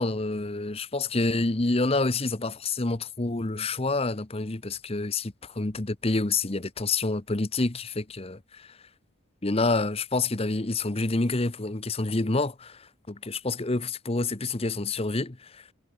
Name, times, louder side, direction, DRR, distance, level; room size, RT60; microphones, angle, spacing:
voice 1, 0.0-8.8 9.4-15.6, left 3 dB, 30° left, 0.9 m, -28 dB
head